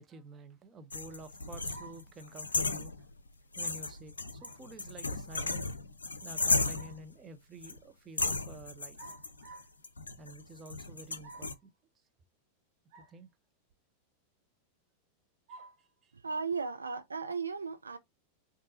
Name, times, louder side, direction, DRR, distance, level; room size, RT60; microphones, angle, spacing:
voice 1, 0.0-2.9 3.6-4.1 4.4-5.7 6.2-9.2 10.2-11.7 13.0-13.3 15.5-15.6 16.0-16.1, right 2 dB, 25° right, 0.8 m, -50 dB
sound 1, 0.9-3.3 3.5-7.0 7.6-7.8 8.2-11.5, left 3 dB, 75° left, 0.5 m, -35 dB
sound 2, 1.7-2.1 4.4-4.7 6.5-7.1 9.0-9.8 11.2-11.6 12.9-13.2 13.7-13.8 15.5-15.8, right 3 dB, 50° right, 1.5 m, -52 dB
voice 2, 16.2-18.0, right 5 dB, 75° right, 0.4 m, -35 dB
5.3 x 2.6 x 2.8 m
figure-of-eight pair, 90°, 0 cm